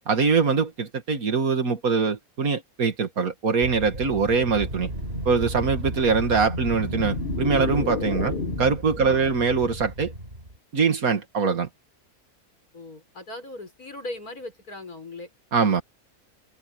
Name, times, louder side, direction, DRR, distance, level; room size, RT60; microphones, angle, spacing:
voice 1, 0.1-4.9 5.3-8.3 8.6-10.1 10.7-11.7 15.5-15.8, right 5 dB, 70° right, 2.4 m, -23 dB
Wind, 3.6-10.6, right 1 dB, 40° right, 7.1 m, -33 dB
sound 1, 6.4-8.9, left 4 dB, 35° left, 1.5 m, -31 dB
voice 2, 9.0-9.3 12.7-15.3, left 2 dB, 80° left, 6.4 m, -39 dB
omnidirectional pair, 1.5 m